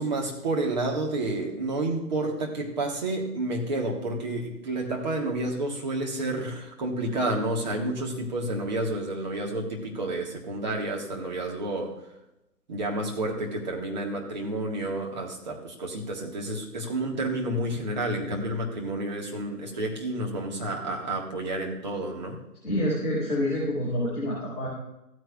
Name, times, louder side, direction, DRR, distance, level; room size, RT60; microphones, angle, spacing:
voice 1, 0.0-11.9 12.7-22.4, right 2 dB, 30° right, 0 dB, 1.8 m, -30 dB
voice 2, 22.6-24.7, left 1 dB, ahead, -16 dB, 3.8 m, -27 dB
15.0 x 9.2 x 2.5 m, 0.90 s
figure-of-eight pair, 150°, 47 cm